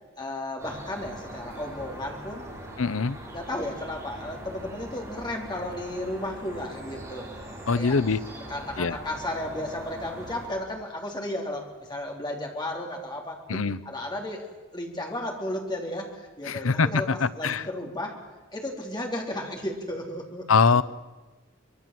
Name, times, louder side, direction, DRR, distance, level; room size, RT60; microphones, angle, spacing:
voice 1, 0.2-2.5 3.3-7.3 7.7-8.0 8.3-13.6 13.8-14.5 14.7-18.2 18.5-20.8, left 1 dB, 20° left, 0 dB, 3.7 m, -34 dB
sound 1, 0.6-10.5, right 1 dB, 15° right, 7.0 m, -41 dB
voice 2, 2.8-3.2 7.7-8.2 8.8-8.9 13.5-13.8 16.5-17.7 20.5-20.8, left 4 dB, 85° left, 17 dB, 0.7 m, -23 dB
25.0 x 22.5 x 7.7 m, 1.2 s
head